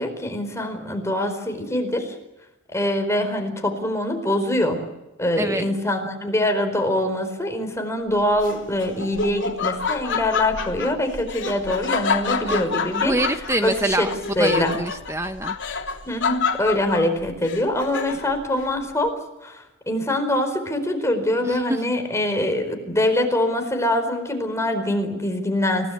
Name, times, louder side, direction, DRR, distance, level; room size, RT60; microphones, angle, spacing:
voice 1, 0.0-2.2 2.7-4.8 5.2-13.2 13.6-14.1 14.4-14.8 16.0-25.9, left 1 dB, 15° left, 5 dB, 4.6 m, -24 dB
voice 2, 5.4-5.8 12.4-14.1 14.4-15.6 21.4-21.9, right 1 dB, 15° right, 8 dB, 0.9 m, -26 dB
Laughter, 8.4-18.4, left 5 dB, 60° left, 3.3 m, -28 dB
30.0 x 18.0 x 8.7 m, 0.98 s
head